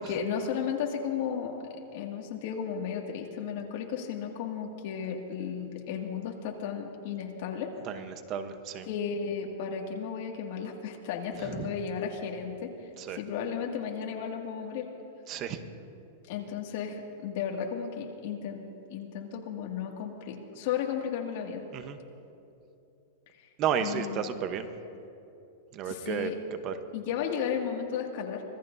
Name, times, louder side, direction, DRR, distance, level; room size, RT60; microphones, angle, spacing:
voice 1, 0.0-1.6 1.9-7.7 8.9-14.9 16.3-21.6 23.8-24.3 25.8-26.4 26.9-28.4, left 7 dB, 60° left, 1 dB, 2.1 m, -34 dB
voice 2, 7.9-8.9 11.6-11.7 13.0-13.2 15.3-15.6 21.7-22.0 23.6-24.7 25.7-26.3 26.6-26.7, right 8 dB, 35° right, 9 dB, 0.9 m, -32 dB
25.0 x 18.0 x 2.7 m, 2.8 s
supercardioid pair, 140°, 0 cm